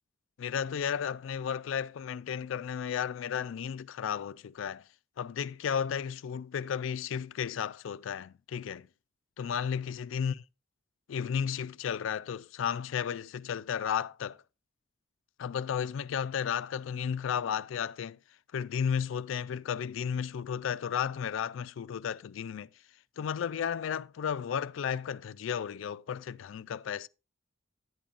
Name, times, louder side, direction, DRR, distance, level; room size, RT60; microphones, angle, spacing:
voice 1, 0.4-4.9 5.2-8.9 9.4-10.4 11.1-14.4 15.4-18.2 18.5-22.7 23.2-27.1, left 7 dB, 80° left, 0.3 m, -33 dB
11.0 x 8.6 x 2.4 m
head